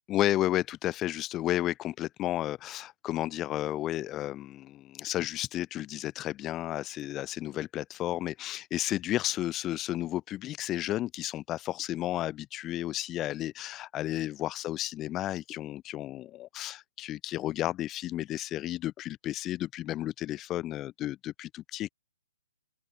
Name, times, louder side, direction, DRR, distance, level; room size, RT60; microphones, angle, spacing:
voice 1, 0.1-21.9, left 14 dB, 20° left, 0.5 m, -32 dB
open air
hypercardioid pair, 140°, 0 cm